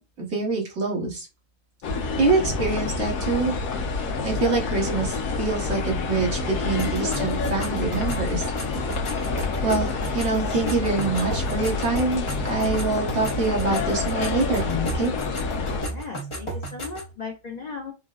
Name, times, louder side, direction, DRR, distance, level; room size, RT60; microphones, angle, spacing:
voice 1, 0.2-1.3 2.2-3.5 4.2-6.4 6.6-8.4 9.6-15.1, right 3 dB, 60° right, -1 dB, 1.5 m, -25 dB
sound 1, 1.8-15.9, left 4 dB, 90° left, 1.2 m, -28 dB
sound 2, 6.8-17.1, right 1 dB, 25° left, 0.7 m, -35 dB
voice 2, 15.8-17.9, left 4 dB, 60° left, 1 dB, 0.4 m, -37 dB
4.3 x 2.0 x 2.3 m, 0.29 s
omnidirectional pair, 1.5 m